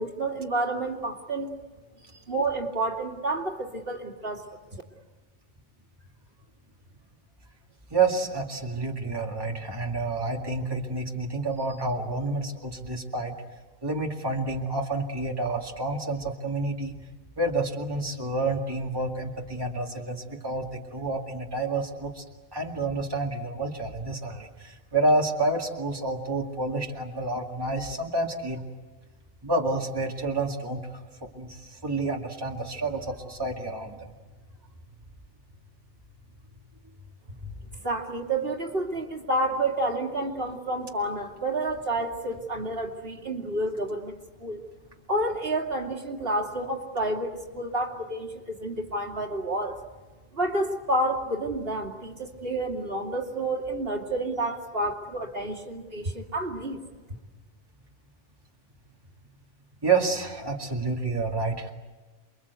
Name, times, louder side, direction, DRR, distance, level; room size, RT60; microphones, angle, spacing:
voice 1, 0.0-1.5 2.3-4.4 37.8-44.6 45.1-49.7 50.3-56.8, right 1 dB, 50° right, 1 dB, 2.8 m, -29 dB
voice 2, 7.9-13.4 13.8-16.9 17.4-22.2 22.5-28.6 29.4-34.1 37.4-37.5 59.8-61.7, right 2 dB, 20° right, -1 dB, 2.2 m, -29 dB
29.0 x 23.0 x 8.2 m, 1.3 s
omnidirectional pair, 1.3 m